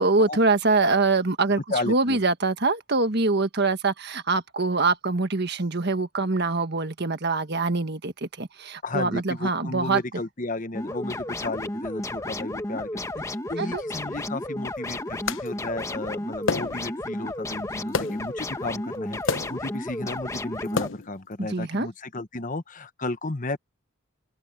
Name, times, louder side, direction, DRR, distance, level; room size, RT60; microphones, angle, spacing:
voice 1, 0.0-1.6 1.9-10.0 13.6-13.8 21.4-21.9, right 3 dB, 50° right, 1.5 m, -24 dB
voice 2, 1.7-2.2 8.8-13.0 13.3-15.0 15.4-23.6, left 2 dB, 40° left, 1.2 m, -33 dB
sound 1, 10.7-20.9, left 1 dB, 15° left, 1.1 m, -33 dB
sound 2, 15.3-15.5 16.5-17.0 17.9-18.3 19.2-19.7 20.7-21.2, left 4 dB, 65° left, 1.0 m, -28 dB
open air
head